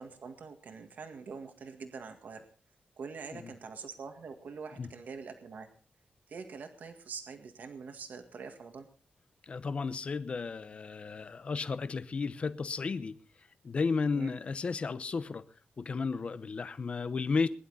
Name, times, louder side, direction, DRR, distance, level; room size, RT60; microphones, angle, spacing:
voice 1, 0.0-2.4 3.0-5.7 6.3-8.9 14.1-14.3, right 5 dB, 60° right, 1.9 m, -44 dB
voice 2, 9.4-13.2 13.6-15.5 15.8-17.5, left 4 dB, 40° left, 0.8 m, -33 dB
21.0 x 11.0 x 4.1 m
wide cardioid pair, 165°, 3 cm